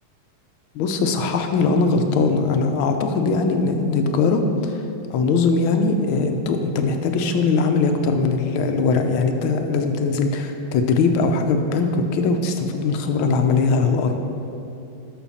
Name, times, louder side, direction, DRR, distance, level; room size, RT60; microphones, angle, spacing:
voice 1, 0.7-4.7 5.1-14.2, left 4 dB, 75° left, 6 dB, 1.5 m, -20 dB
12.0 x 6.6 x 4.2 m, 2.7 s
omnidirectional pair, 2.4 m